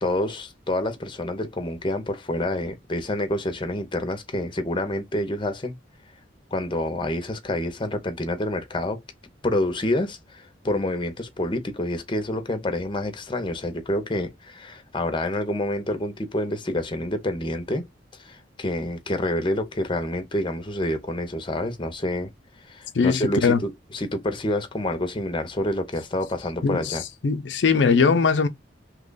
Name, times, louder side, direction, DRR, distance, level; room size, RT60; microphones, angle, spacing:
voice 1, 0.0-5.7 6.5-9.0 9.4-17.8 18.1-22.3 22.7-27.0, left 1 dB, 25° left, 0.7 m, -28 dB
voice 2, 22.9-23.6 26.6-27.0 27.2-28.5, left 5 dB, 75° left, 0.5 m, -20 dB
2.9 x 2.3 x 3.8 m
head